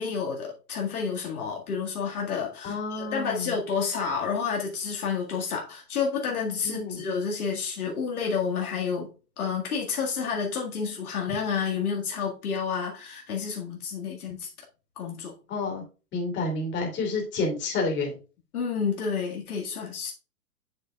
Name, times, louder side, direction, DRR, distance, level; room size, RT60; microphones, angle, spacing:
voice 1, 0.0-9.1 9.4-14.5 15.0-15.3 18.5-20.1, left 6 dB, 60° left, 2.0 m, -30 dB
voice 2, 2.6-3.5 6.6-7.0 15.5-15.8 16.1-18.2, left 3 dB, 20° left, 2.8 m, -29 dB
7.5 x 6.7 x 2.3 m
figure-of-eight pair, 115°, 48 cm